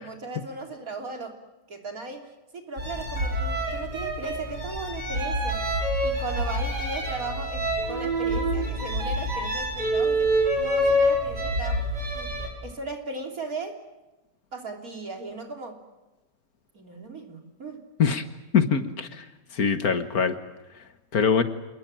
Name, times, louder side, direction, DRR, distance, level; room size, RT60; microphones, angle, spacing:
voice 1, 0.0-1.4 1.7-2.3 2.5-5.7 6.0-12.3 12.6-13.8 14.5-15.8 16.7-17.9, right 3 dB, 55° right, 3 dB, 3.6 m, -37 dB
sound 1, 2.8-12.5, equal, 75° right, 5.9 m, -26 dB
voice 2, 18.5-19.3 19.5-20.4 21.1-21.4, left 6 dB, 60° left, 10 dB, 1.9 m, -23 dB
27.5 x 21.5 x 7.6 m, 1.1 s
omnidirectional pair, 1.8 m